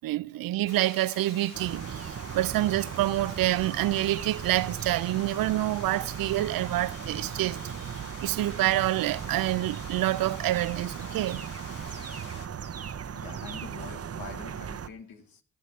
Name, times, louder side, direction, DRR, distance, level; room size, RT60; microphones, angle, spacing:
voice 1, 0.0-7.9 8.2-11.5, right 15 dB, 80° right, 0.5 m, -27 dB
sound 1, 0.7-12.5, left 5 dB, 65° left, 1.7 m, -47 dB
sound 2, 1.5-14.9, right 8 dB, 45° right, 0.7 m, -37 dB
voice 2, 13.1-15.4, left 6 dB, 90° left, 1.4 m, -45 dB
17.0 x 9.7 x 3.2 m
supercardioid pair, 40°, 34 cm